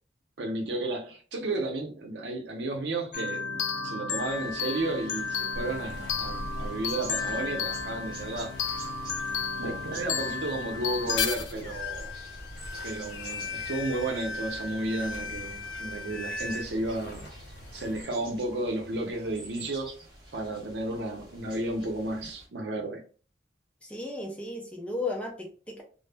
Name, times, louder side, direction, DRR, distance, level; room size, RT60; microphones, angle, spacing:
voice 1, 0.4-8.5 9.6-12.1 12.8-17.3 17.7-19.9 20.3-23.0, right 2 dB, 75° right, 0.6 m, -33 dB
sound 1, 3.1-16.6, left 5 dB, 85° left, 0.4 m, -34 dB
sound 2, 4.1-22.5, right 2 dB, 25° right, 0.8 m, -50 dB
sound 3, 5.5-18.0, equal, 60° left, 0.7 m, -45 dB
voice 2, 23.8-25.8, left 2 dB, 5° left, 0.4 m, -35 dB
2.0 x 2.0 x 3.3 m
head